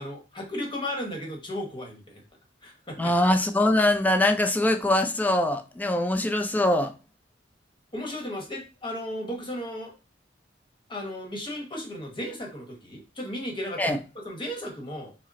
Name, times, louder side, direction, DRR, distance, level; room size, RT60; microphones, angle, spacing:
voice 1, 0.0-2.2 2.6-3.1 7.9-10.0 10.9-14.0 14.2-15.1, left 1 dB, 25° left, 1.0 m, -35 dB
voice 2, 3.0-6.9 13.8-14.0, left 1 dB, 10° left, 0.4 m, -23 dB
5.0 x 2.0 x 4.0 m
head